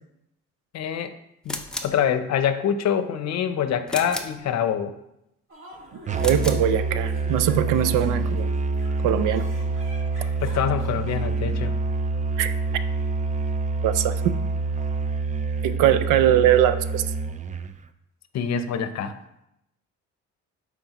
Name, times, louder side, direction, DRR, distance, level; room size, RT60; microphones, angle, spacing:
voice 1, 0.7-1.2 1.4-4.9 10.4-11.7 18.3-19.1, left 8 dB, 60° left, 10 dB, 0.6 m, -25 dB
sound 1, 1.4-2.0 3.9-4.4 6.1-6.7, left 1 dB, ahead, 0.7 m, -33 dB
sound 2, 5.5-11.2, left 1 dB, 45° right, 1.9 m, -44 dB
Musical instrument, 6.1-17.8, right 3 dB, 25° right, 0.4 m, -26 dB
voice 2, 6.2-8.5 9.0-9.5 12.4-12.5 13.8-14.3 15.6-17.0, right 11 dB, 90° right, 13 dB, 0.5 m, -21 dB
7.8 x 4.7 x 2.9 m, 0.83 s
cardioid pair, 90°, 30 cm